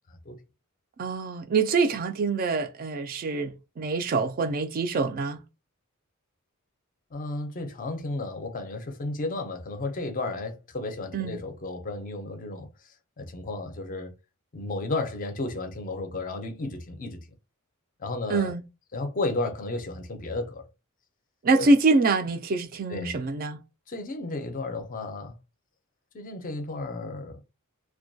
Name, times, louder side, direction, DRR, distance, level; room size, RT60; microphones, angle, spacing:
voice 1, 1.0-5.4 11.1-11.4 18.3-18.6 21.4-23.6, right 3 dB, 40° right, 0.3 m, -25 dB
voice 2, 7.1-12.7 13.2-14.1 14.5-17.2 18.0-18.5 18.9-20.7 21.5-21.7 22.9-23.2 23.9-25.3 26.1-27.4, left 2 dB, 40° left, 0.5 m, -33 dB
2.2 x 2.2 x 2.6 m
head